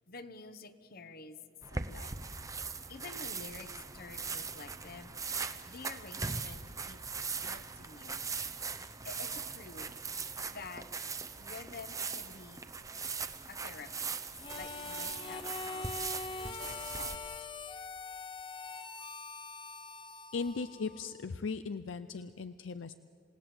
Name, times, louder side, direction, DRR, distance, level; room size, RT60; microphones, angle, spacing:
voice 1, 0.1-1.4 1.7-2.2 2.9-5.1 5.7-8.3 9.0-10.9 11.4-12.6 13.5-14.1 14.5-15.9 16.5-17.3, left 4 dB, 50° left, 11 dB, 1.1 m, -49 dB
sound 1, 1.6-17.2, right 5 dB, 15° right, 0.8 m, -40 dB
Harmonica, 14.3-21.2, left 4 dB, 25° left, 0.7 m, -43 dB
voice 2, 20.3-22.9, left 4 dB, 70° left, 11 dB, 0.5 m, -38 dB
27.5 x 18.0 x 7.8 m, 2.7 s
head